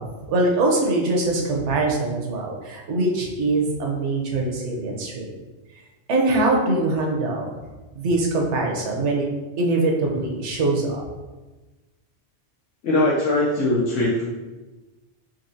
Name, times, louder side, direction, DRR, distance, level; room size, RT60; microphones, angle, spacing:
voice 1, 0.0-5.3 6.1-7.5 7.9-9.3 9.6-11.1, right 2 dB, 70° right, 0 dB, 1.0 m, -23 dB
voice 2, 12.8-14.2, left 1 dB, 90° left, -7 dB, 1.1 m, -20 dB
4.2 x 3.1 x 2.6 m, 1.2 s
omnidirectional pair, 1.2 m